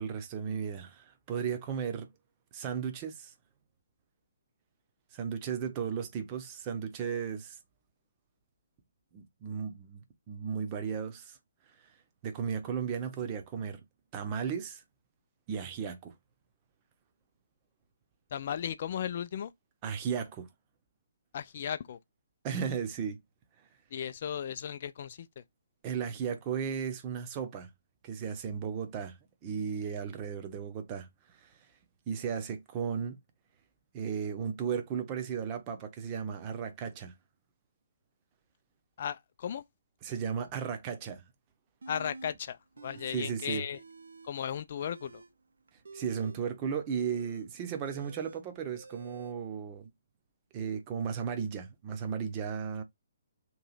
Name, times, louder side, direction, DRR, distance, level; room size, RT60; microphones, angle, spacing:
voice 1, 0.0-2.1 2.5-3.3 5.1-7.6 9.1-10.0 10.3-11.4 11.8-11.9 12.2-13.8 14.1-14.8 15.5-16.1 19.8-20.5 22.4-23.2 25.8-27.7 28.0-29.2 29.4-31.1 31.4-31.5 32.1-33.2 33.9-37.1 40.0-41.2 43.1-43.6 45.9-49.9 50.5-52.8, right 7 dB, 25° right, 0.7 m, -35 dB
voice 2, 18.3-19.5 21.3-22.0 23.9-25.4 39.0-39.6 41.9-43.8 44.2-45.2, left 8 dB, 45° left, 0.4 m, -36 dB
sound 1, 41.8-42.3 42.7-43.3 43.6-44.3 44.7-49.3, right 3 dB, 60° right, 0.6 m, -50 dB
3.0 x 2.7 x 3.9 m
figure-of-eight pair, 130°, 0 cm